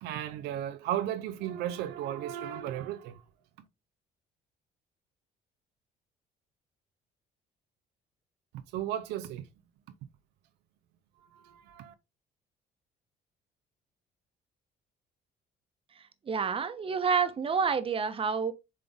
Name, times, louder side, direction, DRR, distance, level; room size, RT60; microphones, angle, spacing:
voice 1, 0.0-3.2 3.6-3.7 8.5-9.5 11.2-11.9, right 11 dB, 85° right, 0.6 m, -35 dB
voice 2, 16.0-18.5, right 5 dB, 35° right, 1.1 m, -29 dB
7.4 x 3.8 x 3.5 m
cardioid pair, 110°, 17 cm